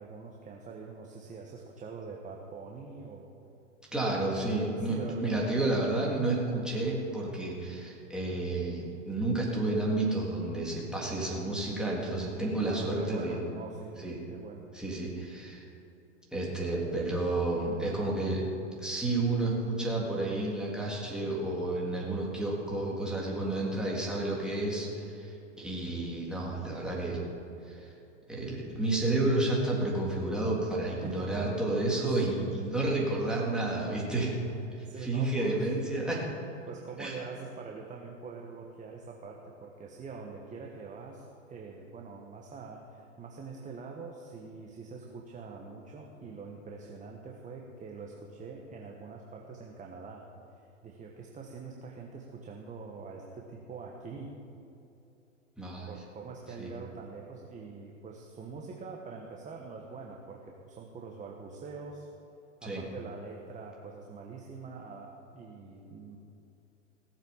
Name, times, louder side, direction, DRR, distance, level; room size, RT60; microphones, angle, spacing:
voice 1, 0.0-3.3 4.8-5.6 12.7-14.0 14.3-14.7 31.0-31.3 32.2-32.3 34.8-35.7 36.7-50.2 50.5-54.3 55.8-62.1 62.6-66.2, right 4 dB, 20° right, 0 dB, 1.3 m, -44 dB
voice 2, 3.9-13.4 14.0-14.2 14.7-15.6 16.3-18.4 18.8-27.2 27.7-27.9 28.3-34.4 35.0-36.3 37.0-37.2 55.6-55.9 56.6-56.7 62.6-62.8, right 2 dB, ahead, -5 dB, 3.5 m, -31 dB
17.5 x 7.5 x 7.3 m, 2.8 s
hypercardioid pair, 115°, 38 cm